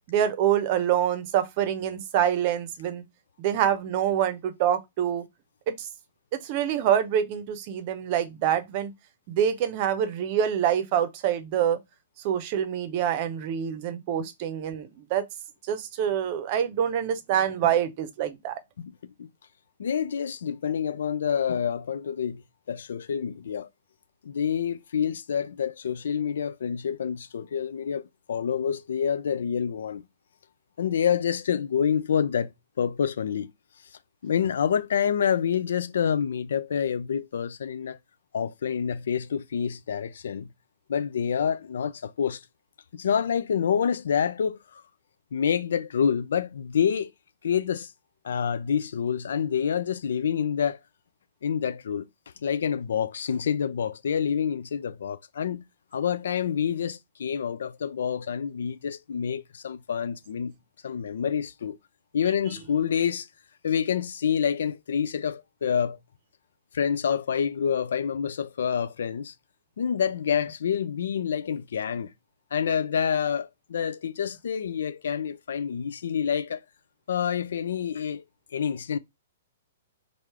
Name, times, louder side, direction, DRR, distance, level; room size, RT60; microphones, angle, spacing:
voice 1, 0.1-3.0 3.4-5.2 5.7-5.9 6.3-8.9 9.3-11.8 12.2-15.2 15.7-18.6, right 9 dB, 45° right, 0.7 m, -26 dB
voice 2, 18.8-19.3 19.8-22.4 22.7-23.7 24.2-30.0 30.8-33.5 34.2-38.0 38.3-40.5 40.9-42.4 42.9-44.8 45.3-47.1 47.4-47.9 48.2-50.8 51.4-52.1 52.4-55.6 55.9-60.5 60.8-61.8 62.1-63.3 63.6-66.0 66.7-69.3 69.8-72.1 72.5-76.6 77.1-78.2 78.5-79.0, left 7 dB, 70° left, 0.4 m, -27 dB
3.2 x 2.6 x 3.1 m
hypercardioid pair, 120°, 0 cm